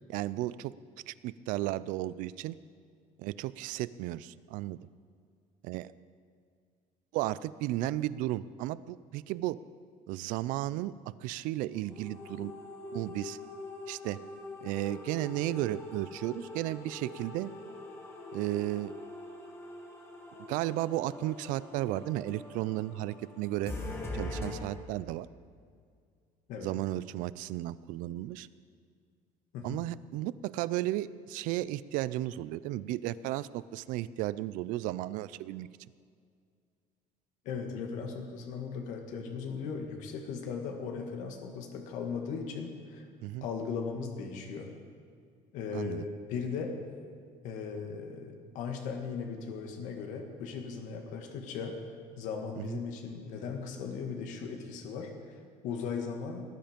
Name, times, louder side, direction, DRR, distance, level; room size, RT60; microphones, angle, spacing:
voice 1, 0.1-0.7 1.1-2.6 3.2-4.8 5.6-5.9 7.1-9.6 10.1-10.9 11.2-12.5 12.9-13.4 13.9-14.2 14.6-17.5 18.3-18.9 20.5-23.7 24.1-25.3 26.6-28.5 29.6-35.7 43.2-43.5 45.7-46.1 52.6-52.8, right 15 dB, 85° right, 18 dB, 0.5 m, -34 dB
sound 1, 11.7-24.5, left 2 dB, 20° left, 1.7 m, -43 dB
voice 2, 37.5-43.1 43.4-44.7 45.5-46.8 47.4-51.8 52.2-56.4, left 5 dB, 70° left, 4 dB, 1.9 m, -38 dB
19.0 x 11.5 x 5.2 m, 2.2 s
cardioid pair, 180°, 13 cm